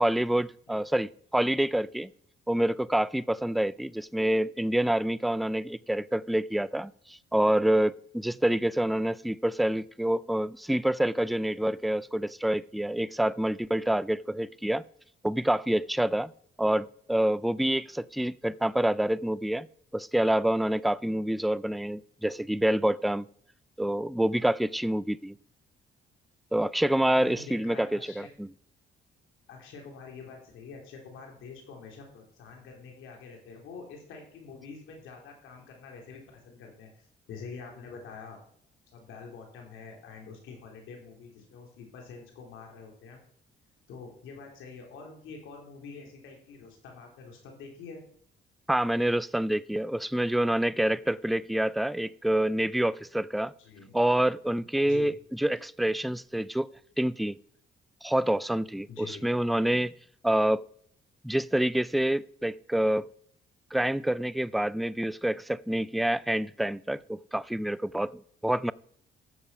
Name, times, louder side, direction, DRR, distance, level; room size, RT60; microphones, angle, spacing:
voice 1, 0.0-2.1 2.5-14.8 15.2-16.3 16.6-19.7 19.9-23.3 23.8-25.4 26.5-28.5 48.7-53.5 53.9-56.7 57.0-57.4 58.0-59.9 60.2-60.6 61.2-63.1 63.7-68.7, right 1 dB, ahead, 0.3 m, -27 dB
voice 2, 27.0-28.3 29.5-38.4 38.9-43.2 43.9-48.0 53.6-53.9 54.8-55.1 58.9-59.3, left 5 dB, 90° left, 3.6 m, -46 dB
13.5 x 6.9 x 5.5 m
cardioid pair, 90°, 20 cm